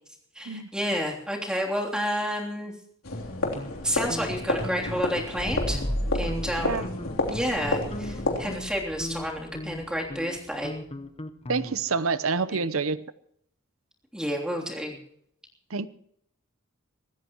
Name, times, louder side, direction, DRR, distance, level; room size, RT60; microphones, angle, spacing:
voice 1, 0.3-2.7 3.8-5.8 6.1-6.9 7.3-10.8 12.5-12.6 14.1-15.0, equal, 5° right, 3.2 m, -30 dB
sound 1, 3.0-8.6, left 2 dB, 85° left, 3.3 m, -30 dB
sound 2, 3.3-4.3 4.6-5.1 5.5-6.0 6.3-6.5 6.8-7.3 7.6-12.0, left 1 dB, 30° left, 1.0 m, -39 dB
sound 3, 5.4-10.9, equal, 25° right, 4.8 m, -35 dB
voice 2, 11.5-13.0 15.7-15.9, right 4 dB, 75° right, 0.8 m, -27 dB
25.5 x 14.0 x 3.1 m
head